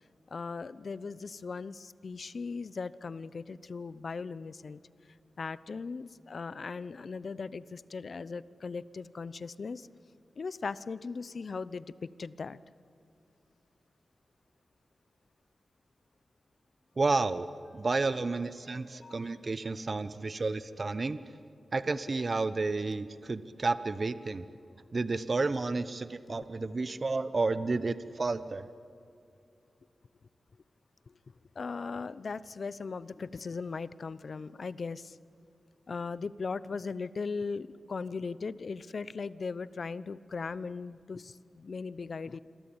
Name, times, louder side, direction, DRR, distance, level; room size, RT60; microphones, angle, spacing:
voice 1, 0.3-4.8 5.4-9.9 10.4-12.6 18.9-19.3 26.3-26.4 31.6-35.2 35.9-42.4, left 4 dB, 65° left, 17 dB, 0.8 m, -38 dB
voice 2, 17.0-17.5 17.7-21.2 21.7-24.5 24.9-28.7, right 3 dB, 45° right, 13 dB, 0.9 m, -31 dB
27.0 x 23.0 x 8.9 m, 2.6 s
cardioid pair, 70°, 0 cm